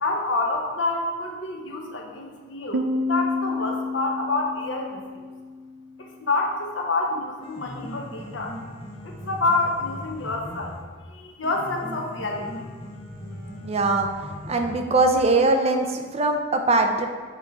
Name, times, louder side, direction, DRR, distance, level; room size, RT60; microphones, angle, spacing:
voice 1, 0.0-2.8 3.1-5.2 6.0-8.5 9.0-10.7 11.1-12.5, left 2 dB, 80° left, 1 dB, 1.0 m, -27 dB
Piano, 2.7-6.2, left 2 dB, 80° right, 0.4 m, -29 dB
Piano 2, 7.2-15.2, left 1 dB, 30° left, 1.1 m, -39 dB
voice 2, 13.6-14.1 14.5-17.1, right 2 dB, 35° right, 4 dB, 0.6 m, -21 dB
7.4 x 4.4 x 3.6 m, 1.5 s
head